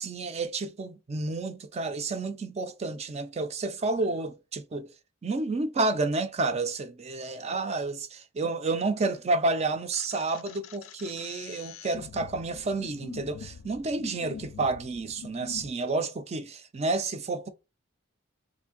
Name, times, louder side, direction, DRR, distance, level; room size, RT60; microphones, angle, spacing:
voice 1, 0.0-4.9 5.2-17.5, right 3 dB, 30° right, 0.4 m, -30 dB
sound 1, 9.9-15.7, left 6 dB, 75° left, 0.4 m, -45 dB
3.2 x 2.6 x 3.7 m
head